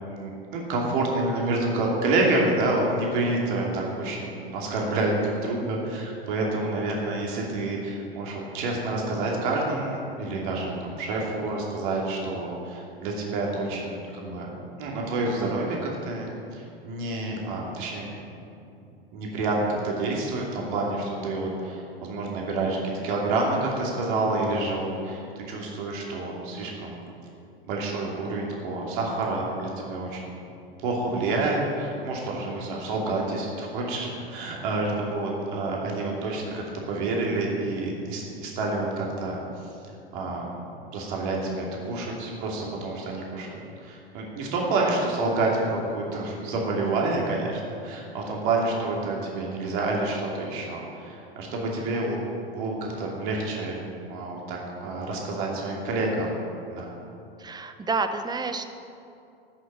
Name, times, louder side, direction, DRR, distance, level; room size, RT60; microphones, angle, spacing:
voice 1, 0.1-14.5 14.8-15.8 16.0-18.2 19.1-27.0 27.6-30.4 30.8-39.4 40.1-40.6 40.9-52.2 52.4-56.3 56.7-56.9, right 2 dB, 55° right, -2 dB, 2.8 m, -28 dB
voice 2, 57.4-58.6, right 4 dB, 15° right, 8 dB, 0.9 m, -29 dB
13.5 x 6.8 x 9.0 m, 2.6 s
figure-of-eight pair, 95°, 30 cm